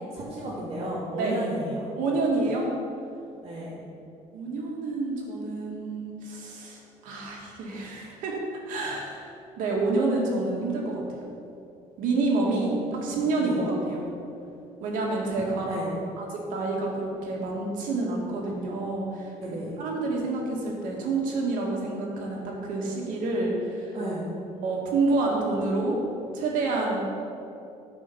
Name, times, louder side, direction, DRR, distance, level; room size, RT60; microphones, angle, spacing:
voice 1, 0.1-1.9 3.4-3.8 12.6-12.7 13.0-13.6 15.4-15.9 19.4-19.7 23.9-24.3, right 1 dB, 40° right, -8 dB, 1.9 m, -34 dB
voice 2, 2.0-2.7 4.3-8.4 8.7-9.3 9.6-11.0 12.0-14.1 14.8-15.7 16.2-24.0 24.5-26.0 26.3-27.0, right 3 dB, 85° right, -2 dB, 2.1 m, -28 dB
9.6 x 5.0 x 7.1 m, 2.7 s
cardioid pair, 160°, 13 cm